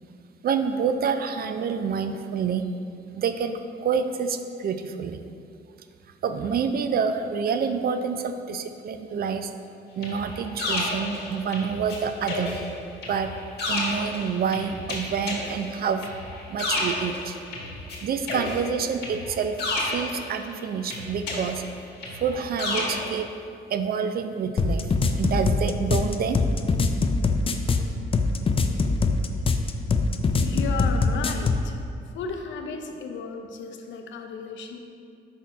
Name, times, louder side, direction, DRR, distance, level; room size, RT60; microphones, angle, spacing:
voice 1, 0.4-2.6 3.1-5.2 6.2-9.5 10.0-12.5 13.1-13.3 13.7-16.1 16.5-17.4 18.0-19.6 19.9-21.6 22.2-23.3 23.7-24.9 25.2-26.4, right 6 dB, 50° right, 8 dB, 0.4 m, -27 dB
sound 1, 10.0-12.0 12.3-18.0 18.3-20.5 20.9-23.2, left 2 dB, 55° left, 1.3 m, -31 dB
sound 2, 24.6-31.7, left 4 dB, 30° left, 0.4 m, -23 dB
voice 2, 29.9-31.8 32.1-34.8, left 4 dB, 70° left, 4 dB, 0.6 m, -34 dB
5.5 x 4.2 x 4.3 m, 2.4 s
cardioid pair, 90°, 20 cm